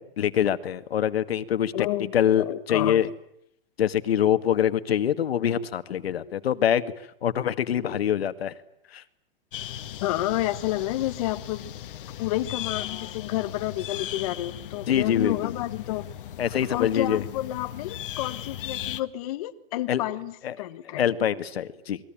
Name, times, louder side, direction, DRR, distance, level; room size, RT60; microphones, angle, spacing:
voice 1, 0.0-1.9 2.1-3.1 3.8-6.9 7.2-8.5 8.9-9.0 14.9-15.5 16.4-17.2 19.9-20.0 20.4-20.6 20.9-22.0, left 9 dB, 90° left, 11 dB, 2.1 m, -24 dB
voice 2, 1.7-3.0 10.0-11.7 12.2-16.0 16.7-21.0, left 15 dB, 40° left, 9 dB, 1.4 m, -30 dB
sound 1, 9.5-19.0, left 11 dB, 60° left, 1.9 m, -37 dB
28.5 x 21.5 x 9.0 m, 0.75 s
supercardioid pair, 170°, 30 cm